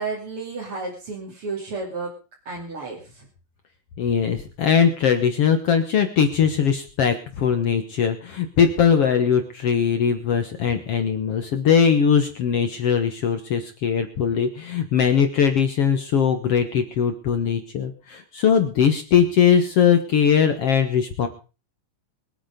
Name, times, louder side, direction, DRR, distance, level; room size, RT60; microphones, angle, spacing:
voice 1, 0.0-2.1 2.4-3.2, right 3 dB, 40° right, -2 dB, 3.5 m, -32 dB
voice 2, 4.0-21.3, left 7 dB, 60° left, 7 dB, 1.8 m, -20 dB
22.5 x 8.8 x 5.1 m, 0.35 s
omnidirectional pair, 3.9 m